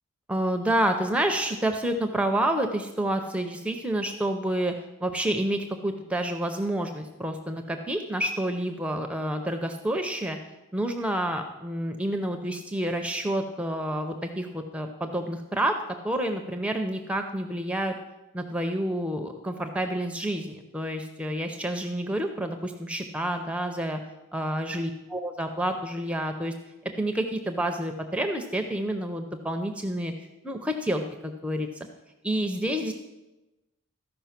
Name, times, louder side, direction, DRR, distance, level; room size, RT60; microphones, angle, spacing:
voice 1, 0.3-4.7 5.0-10.4 10.7-17.9 18.3-24.0 24.3-26.5 27.0-30.1 30.4-31.7 32.2-32.9, right 1 dB, 5° right, 5 dB, 0.5 m, -29 dB
13.5 x 5.3 x 5.8 m, 1.0 s
head